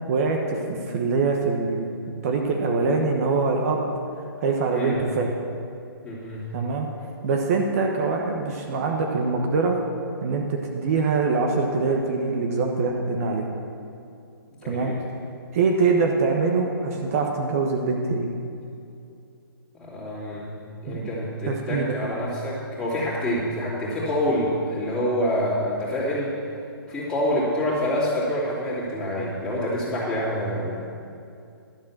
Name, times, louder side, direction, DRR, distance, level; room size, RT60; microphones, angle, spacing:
voice 1, 0.1-1.9 2.2-3.9 4.4-5.3 6.5-6.9 7.2-9.8 10.2-13.5 14.7-14.9 15.5-18.3 20.9-21.1 21.5-21.8, right 4 dB, 40° right, 2 dB, 1.0 m, -24 dB
voice 2, 6.0-6.5 14.6-15.0 19.7-26.3 26.9-30.8, left 1 dB, 5° left, -10 dB, 2.9 m, -27 dB
12.0 x 7.4 x 7.2 m, 2.5 s
hypercardioid pair, 155°, 12 cm